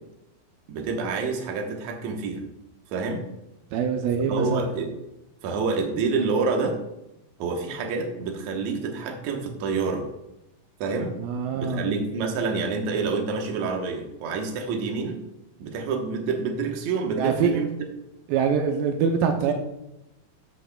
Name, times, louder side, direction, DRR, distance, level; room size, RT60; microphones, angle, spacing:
voice 1, 0.7-2.5 2.9-3.2 4.3-4.9 5.4-6.8 7.4-10.1 10.8-11.1 11.5-15.2 15.6-17.7 19.5-19.6, right 4 dB, 65° right, 2 dB, 2.2 m, -27 dB
voice 2, 3.7-4.6 11.2-11.9 17.2-17.6 18.3-19.5, right 6 dB, 80° right, 4 dB, 2.4 m, -24 dB
13.5 x 6.5 x 2.3 m, 0.90 s
omnidirectional pair, 4.1 m